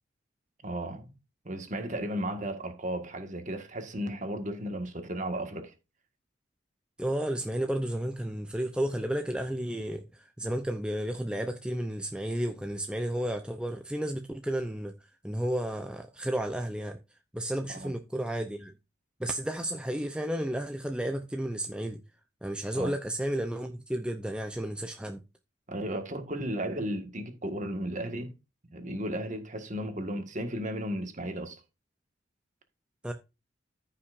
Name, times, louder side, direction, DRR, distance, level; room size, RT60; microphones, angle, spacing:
voice 1, 0.6-1.1 1.5-5.7 17.7-17.9 22.7-22.9 25.7-28.3 28.7-31.6, right 1 dB, 40° right, 1.7 m, -34 dB
voice 2, 7.0-14.9 15.2-17.0 17.3-18.7 19.2-22.0 22.4-25.2 33.0-33.1, right 1 dB, 5° right, 0.6 m, -32 dB
14.5 x 5.7 x 2.6 m
head